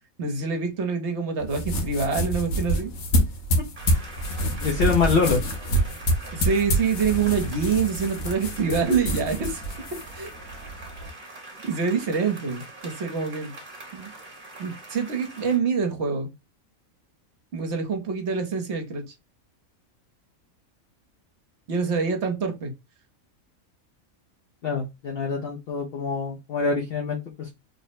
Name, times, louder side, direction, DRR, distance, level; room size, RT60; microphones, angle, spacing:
voice 1, 0.2-2.9 6.3-9.6 10.1-10.3 11.6-13.6 13.9-14.1 14.6-16.3 17.5-19.0 21.7-22.7, right 5 dB, 60° right, 1.0 m, -26 dB
sound 1, 1.4-11.1, equal, 85° left, 1.3 m, -27 dB
sound 2, 3.8-15.6, right 2 dB, 40° right, 1.1 m, -43 dB
voice 2, 4.6-5.4 24.6-27.5, left 5 dB, 55° left, 0.7 m, -25 dB
3.2 x 2.0 x 4.1 m
omnidirectional pair, 1.4 m